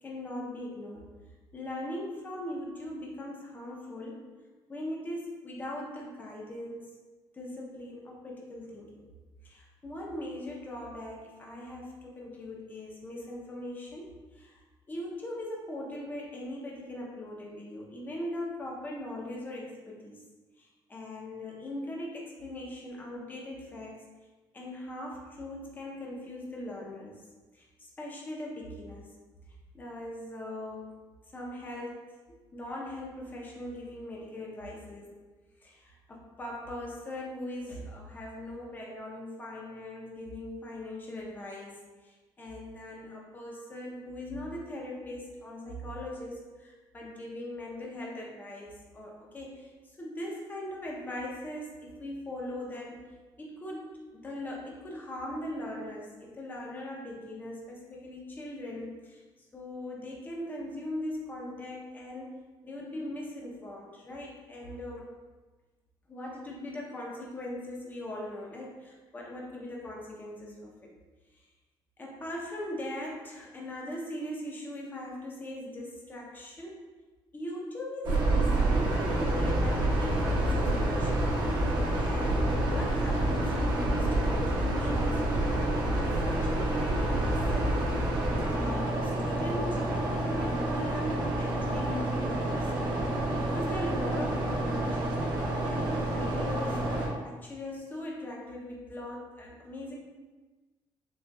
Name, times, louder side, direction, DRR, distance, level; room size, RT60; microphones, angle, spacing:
voice 1, 0.0-1.1 1.5-4.3 4.7-6.9 7.3-9.0 9.4-14.6 14.9-20.2 20.6-24.0 24.5-27.2 27.5-29.1 29.7-30.9 31.3-32.0 32.5-35.2 35.6-49.7 50.0-53.0 53.4-59.2 59.5-62.3 62.6-65.1 66.1-70.9 72.0-76.8 77.3-81.4 82.0-88.0 88.4-92.7 93.5-96.9 97.2-100.0, left 1 dB, 20° left, -2 dB, 0.6 m, -40 dB
sound 1, 78.0-97.1, right 1 dB, 55° right, 0.8 m, -28 dB
3.9 x 2.7 x 2.3 m, 1.3 s
cardioid pair, 135°, 9 cm